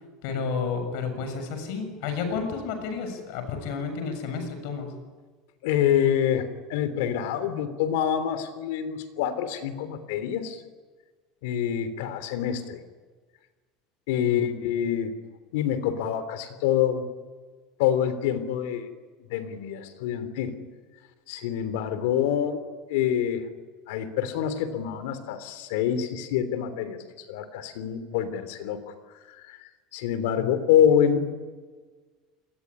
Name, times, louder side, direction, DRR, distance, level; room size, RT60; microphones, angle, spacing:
voice 1, 0.2-4.9 14.2-14.7 30.4-30.6, left 5 dB, 60° left, 7 dB, 7.1 m, -31 dB
voice 2, 5.6-10.6 11.4-12.8 14.1-15.1 15.5-17.1 17.8-18.9 19.3-20.6 21.3-22.6 22.9-23.5 23.9-27.0 27.3-29.6 29.9-31.3, left 9 dB, 80° left, 11 dB, 3.4 m, -26 dB
28.5 x 21.0 x 9.9 m, 1.4 s
cardioid pair, 175°, 0 cm